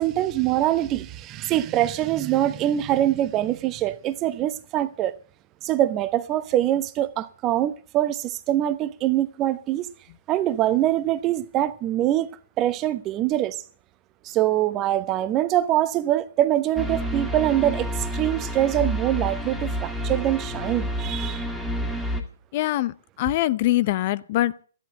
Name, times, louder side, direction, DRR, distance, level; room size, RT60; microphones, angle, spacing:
voice 1, 0.0-5.1 5.6-9.9 10.3-12.3 12.6-13.6 14.2-21.5, right 13 dB, 25° right, 1.0 m, -24 dB
sound 1, 16.8-22.2, equal, 5° left, 2.1 m, -29 dB
voice 2, 22.5-24.7, left 15 dB, 40° left, 0.6 m, -23 dB
13.5 x 11.0 x 7.7 m
figure-of-eight pair, 130°, 0 cm